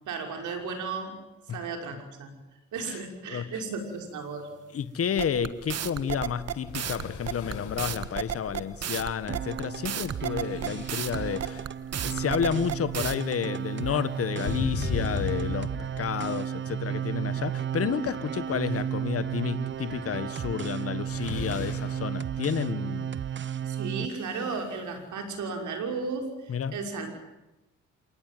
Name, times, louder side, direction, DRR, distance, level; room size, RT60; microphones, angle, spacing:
voice 1, 0.1-1.2 1.5-2.3 2.7-4.5 23.7-27.1, right 4 dB, 75° right, 4 dB, 5.9 m, -34 dB
voice 2, 4.7-11.7 12.0-15.7 16.0-23.1 26.5-26.8, left 7 dB, 50° left, 14 dB, 1.6 m, -31 dB
sound 1, 5.2-13.2, right 9 dB, 55° right, 1.7 m, -32 dB
sound 2, 6.7-8.9 10.3-11.5 14.4-16.4 17.6-17.7 18.2-18.8 20.4-20.6 21.0-22.2 23.9-24.8, left 6 dB, 75° left, 5.2 m, -37 dB
sound 3, 9.3-24.1, right 9 dB, 40° right, 0.9 m, -33 dB
27.0 x 19.0 x 9.4 m, 0.99 s
cardioid pair, 90°, 30 cm